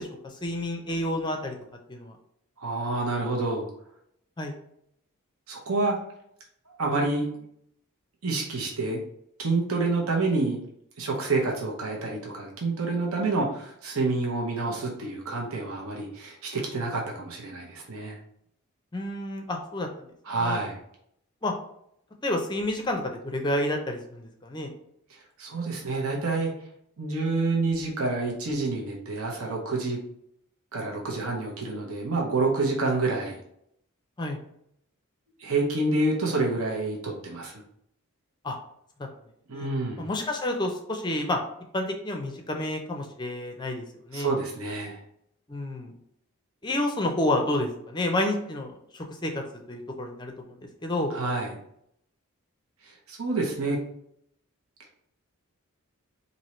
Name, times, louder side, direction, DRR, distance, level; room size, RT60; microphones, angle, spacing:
voice 1, 0.0-1.5 1.9-2.2 4.4-4.5 18.9-20.1 20.4-20.6 21.4-21.5 22.2-24.7 34.2-34.4 38.4-38.6 39.5-39.7 40.0-41.4 41.7-44.3 45.5-45.9 46.6-49.3 49.7-51.1, left 1 dB, 20° left, 3 dB, 0.4 m, -30 dB
voice 2, 2.6-3.7 5.5-6.0 6.7-7.3 8.2-9.0 9.4-10.6 11.0-18.2 20.2-20.8 25.1-26.5 27.0-30.0 30.7-33.4 35.4-37.6 39.5-40.1 44.1-45.0 51.1-51.5 52.8-53.8, right 3 dB, 70° right, -1 dB, 0.8 m, -28 dB
4.4 x 2.7 x 3.0 m, 0.73 s
head